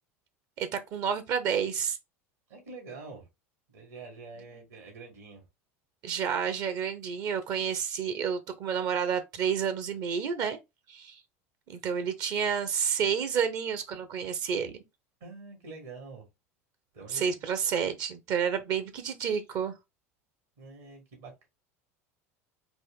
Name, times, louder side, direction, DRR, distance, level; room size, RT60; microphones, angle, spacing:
voice 1, 0.6-2.0 6.0-10.6 10.9-11.2 11.7-14.7 17.1-19.7, right 7 dB, 55° right, 0.9 m, -30 dB
voice 2, 2.5-3.3 3.7-5.4 15.2-16.3 16.9-17.5 20.6-21.5, right 3 dB, 75° right, 2.2 m, -46 dB
4.2 x 2.6 x 3.7 m
hypercardioid pair, 80°, 8 cm